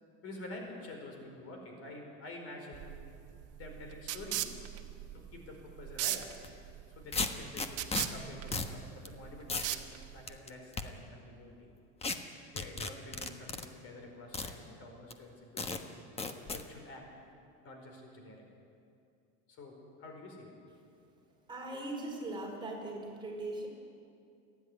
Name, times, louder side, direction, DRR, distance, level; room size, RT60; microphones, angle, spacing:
voice 1, 0.2-3.0 3.6-4.6 5.1-6.4 6.9-11.7 12.5-16.0 16.5-17.2 17.6-18.5 19.5-20.6, left 2 dB, 45° left, 2 dB, 4.7 m, -48 dB
sound 1, 2.7-10.4, right 13 dB, 45° right, 1.3 m, -39 dB
sound 2, 6.3-6.5 7.1-8.1 8.5-8.7 9.0-9.1 9.5-9.8 10.3-10.8 12.0-12.2 12.6-13.7 14.3-14.5 15.1-15.2 15.6-15.8 16.2-16.6, left 4 dB, 20° left, 1.2 m, -35 dB
voice 2, 21.5-23.7, right 2 dB, 15° right, -2 dB, 4.4 m, -39 dB
28.5 x 11.0 x 9.9 m, 2.5 s
cardioid pair, 140°, 33 cm